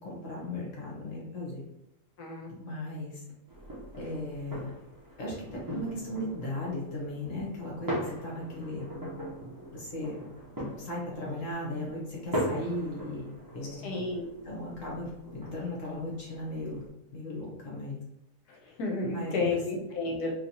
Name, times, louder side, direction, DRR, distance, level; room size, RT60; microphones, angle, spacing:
voice 1, 0.0-1.6 2.5-3.2 4.0-4.7 5.2-8.8 9.7-10.2 10.6-13.9 14.4-16.8 17.1-18.0 19.0-19.6, left 1 dB, 55° left, -4 dB, 1.2 m, -37 dB
sound 1, 3.5-16.9, equal, 25° right, 0.4 m, -40 dB
voice 2, 13.8-14.3 18.8-20.3, left 3 dB, 70° left, 0 dB, 1.2 m, -31 dB
3.2 x 2.8 x 2.7 m, 0.87 s
omnidirectional pair, 1.8 m